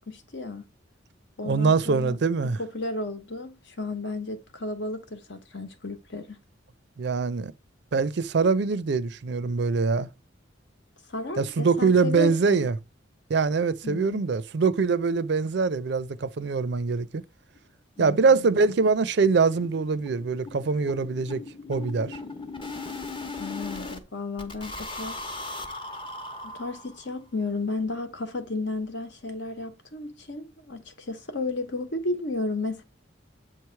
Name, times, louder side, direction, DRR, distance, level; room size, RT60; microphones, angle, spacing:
voice 1, 0.1-0.6 1.4-6.4 11.1-12.7 13.8-14.2 18.0-18.7 23.4-25.2 26.4-32.8, left 2 dB, 65° left, 1.1 m, -33 dB
voice 2, 1.4-2.6 7.0-7.5 7.9-10.1 11.4-12.7 13.3-17.2 18.0-22.2, right 4 dB, 60° right, 0.4 m, -23 dB
sound 1, 17.1-17.2 17.6-17.7 18.0-18.1 18.4-18.5 18.8-24.0 24.4-27.2, left 2 dB, 25° left, 0.9 m, -38 dB
7.5 x 3.2 x 4.5 m
head